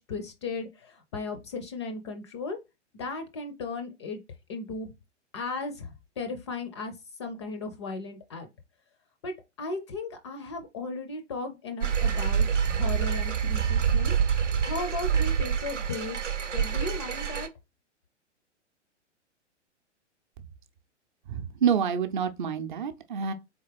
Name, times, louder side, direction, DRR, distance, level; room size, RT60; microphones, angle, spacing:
voice 1, 0.0-2.6 2.9-4.2 4.5-4.9 5.3-8.5 9.2-17.5, left 3 dB, 25° left, 0.4 m, -36 dB
sound 1, 11.8-17.5, right 7 dB, 75° right, 0.7 m, -26 dB
voice 2, 21.3-23.3, right 7 dB, 40° right, 0.6 m, -27 dB
4.1 x 3.5 x 3.2 m
figure-of-eight pair, 110°, 36 cm